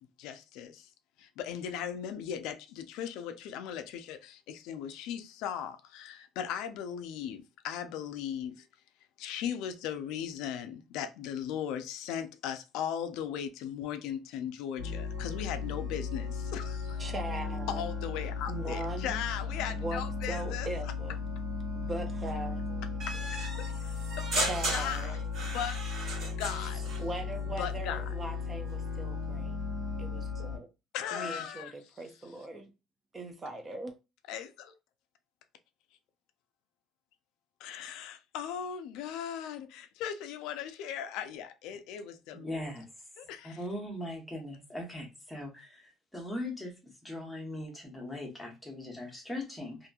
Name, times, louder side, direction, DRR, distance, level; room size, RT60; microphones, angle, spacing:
voice 1, 0.2-0.9 1.2-8.7 9.2-17.0 17.7-20.7 23.1-25.8 26.4-26.9 27.6-28.0 30.9-31.7 34.3-34.7 37.6-42.7 43.2-43.6, left 9 dB, 80° left, 0.4 m, -38 dB
sound 1, 14.8-30.6, left 5 dB, 80° right, 1.3 m, -36 dB
voice 2, 17.0-17.8 18.5-19.2 19.8-20.0 20.3-21.2 21.7-22.6 24.5-25.3 27.0-29.6 30.0-30.7 31.1-32.7 33.1-34.0, right 2 dB, 20° right, 0.4 m, -40 dB
sound 2, 23.0-27.0, right 2 dB, 55° right, 1.4 m, -36 dB
voice 3, 42.3-42.9 43.4-49.9, left 1 dB, 5° left, 0.8 m, -40 dB
2.8 x 2.5 x 2.3 m
cardioid pair, 165°, 0 cm